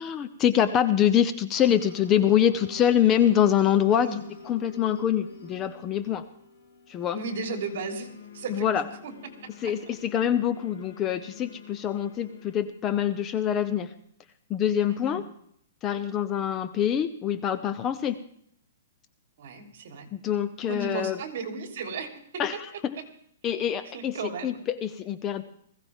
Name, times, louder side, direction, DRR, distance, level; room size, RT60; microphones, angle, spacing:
voice 1, 0.0-4.1 4.4-6.2 6.9-7.2 8.5-8.9 9.6-13.9 14.5-15.2 15.8-18.2 20.1-21.2 22.4-23.0 23.4-24.2 24.4-25.4, left 10 dB, 15° left, 11 dB, 0.6 m, -25 dB
sound 1, 1.6-12.6, left 5 dB, 45° left, 6.0 m, -47 dB
voice 2, 7.1-8.1 8.3-9.1 9.4-9.7 14.9-15.2 19.4-20.1 20.6-22.4 23.9-24.6, right 4 dB, 50° right, 3 dB, 3.5 m, -35 dB
20.5 x 16.0 x 3.6 m, 0.67 s
hypercardioid pair, 170°, 0 cm